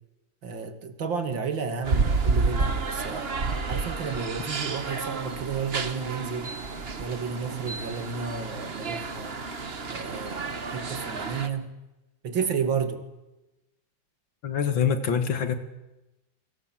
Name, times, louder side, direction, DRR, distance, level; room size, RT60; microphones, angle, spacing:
voice 1, 0.4-3.3 3.7-6.6 7.0-9.4 9.9-11.7 12.2-13.0, right 6 dB, 80° right, 3.1 m, -32 dB
sound 1, 1.8-11.5, right 4 dB, 35° right, 1.5 m, -30 dB
voice 2, 14.4-15.6, left 7 dB, 85° left, 2.6 m, -25 dB
28.5 x 25.0 x 7.6 m
omnidirectional pair, 2.0 m